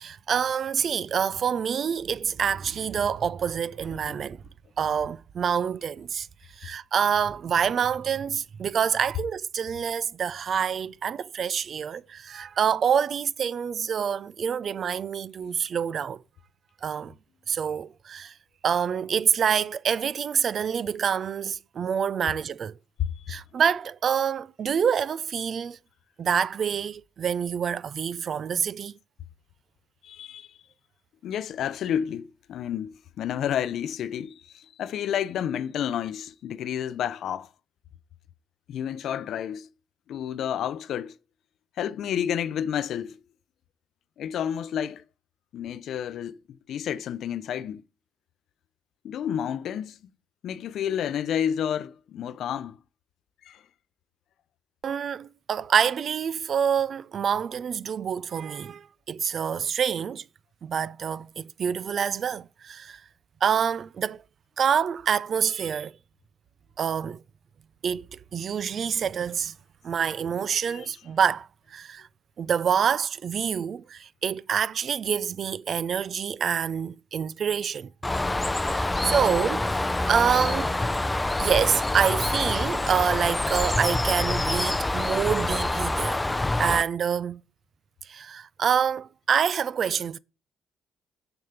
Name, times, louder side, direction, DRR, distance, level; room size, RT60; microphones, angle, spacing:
voice 1, 0.0-4.4 4.8-6.3 6.6-16.2 16.8-17.1 17.5-18.3 18.6-22.8 23.3-25.8 26.2-28.9 54.8-60.2 60.6-63.0 63.4-64.2 64.6-65.9 66.8-67.2 67.8-69.5 69.8-72.1 72.4-77.9 78.7-79.7 80.1-80.8 81.4-86.2 86.6-87.4 88.1-90.2, right 7 dB, 55° right, 0.5 m, -27 dB
voice 2, 23.0-23.4 30.0-30.5 31.2-37.5 38.7-39.7 40.1-41.2 41.8-43.2 44.2-45.0 45.5-47.8 49.0-50.0 50.4-52.8 53.4-53.6 70.7-70.9, left 9 dB, 75° left, 0.6 m, -30 dB
Bird, 78.0-86.8, left 2 dB, 15° left, 0.5 m, -26 dB
7.1 x 6.7 x 6.7 m
cardioid pair, 85°, 0 cm